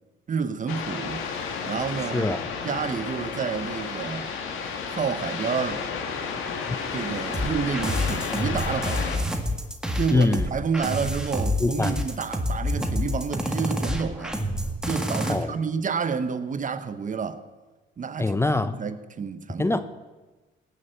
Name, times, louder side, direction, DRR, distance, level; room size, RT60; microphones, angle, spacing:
voice 1, 0.3-1.3 1.6-2.3 2.6-4.3 4.9-5.8 6.9-9.3 9.9-14.4 14.8-17.4 18.0-18.3 18.8-19.8, right 6 dB, 40° right, 1.0 m, -29 dB
sound 1, 0.7-9.2, left 5 dB, 90° left, 1.8 m, -32 dB
voice 2, 2.0-2.5 6.7-6.8 10.1-10.5 11.6-12.0 15.3-15.5 18.2-18.8 19.6-19.8, left 2 dB, 15° left, 0.6 m, -24 dB
sound 2, 7.3-15.3, left 1 dB, 5° right, 1.8 m, -28 dB
18.0 x 6.5 x 7.7 m
cardioid pair, 90°, 20 cm